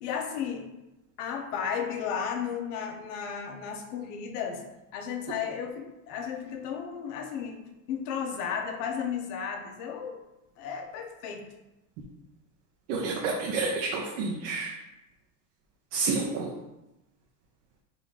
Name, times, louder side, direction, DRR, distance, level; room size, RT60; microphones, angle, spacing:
voice 1, 0.0-0.7 1.2-4.6 4.9-7.6 7.9-10.2 10.6-11.4, left 7 dB, 75° left, 3 dB, 0.9 m, -34 dB
voice 2, 12.9-14.8 15.9-16.5, right 4 dB, 60° right, -1 dB, 0.8 m, -29 dB
4.0 x 2.5 x 4.6 m, 0.97 s
supercardioid pair, 135°, 47 cm